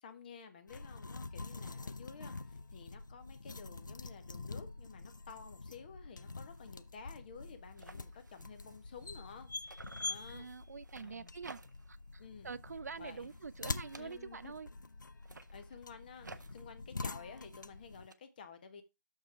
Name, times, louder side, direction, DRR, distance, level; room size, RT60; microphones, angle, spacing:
voice 1, 0.0-10.5 11.0-11.3 12.2-12.5 13.0-13.3 14.0-14.5 15.5-18.8, left 6 dB, 30° left, 1.3 m, -52 dB
sound 1, 0.7-18.1, left 3 dB, 85° left, 0.6 m, -46 dB
sound 2, 6.5-6.8 7.1-7.2 7.4-9.4 9.7-12.0 12.4-12.7 13.0-14.6 15.1-18.1, right 3 dB, 75° right, 0.8 m, -57 dB
voice 2, 10.3-11.6 11.9-14.7, right 5 dB, 60° right, 0.4 m, -46 dB
6.8 x 5.3 x 4.7 m
figure-of-eight pair, 160°, 10 cm